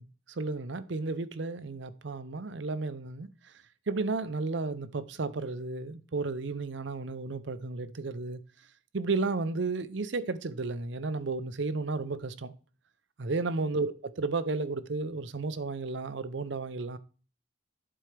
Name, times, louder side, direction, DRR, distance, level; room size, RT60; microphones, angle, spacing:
voice 1, 0.4-3.3 3.9-8.4 8.9-12.5 13.2-13.9 14.2-17.0, right 3 dB, 65° right, 0.6 m, -33 dB
11.0 x 4.4 x 3.3 m
head